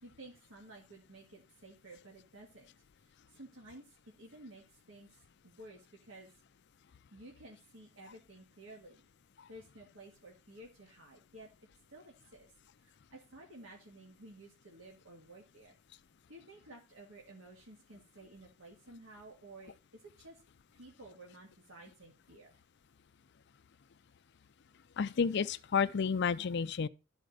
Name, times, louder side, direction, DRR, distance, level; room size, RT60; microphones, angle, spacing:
voice 1, 0.0-2.7 3.0-6.3 7.1-9.1 9.5-11.5 11.9-12.5 12.8-15.8 16.3-20.4 20.8-22.5, right 2 dB, 70° right, 1.8 m, -54 dB
voice 2, 25.0-26.9, left 6 dB, 50° left, 0.4 m, -31 dB
13.0 x 4.4 x 6.4 m
head